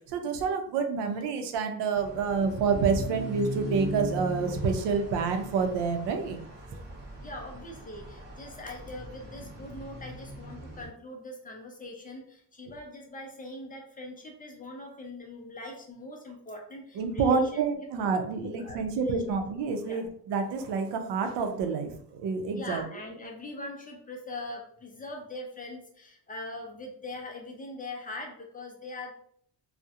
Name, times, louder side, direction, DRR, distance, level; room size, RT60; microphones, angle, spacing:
voice 1, 0.1-6.4 16.9-22.8, right 5 dB, 85° right, 6 dB, 0.5 m, -28 dB
sound 1, 1.9-10.9, right 1 dB, 25° right, 0.7 m, -39 dB
voice 2, 7.2-17.6 18.4-19.4 19.8-20.0 22.5-29.1, left 2 dB, 25° left, 1 dB, 0.3 m, -42 dB
2.3 x 2.0 x 2.7 m, 0.64 s
cardioid pair, 130°, 41 cm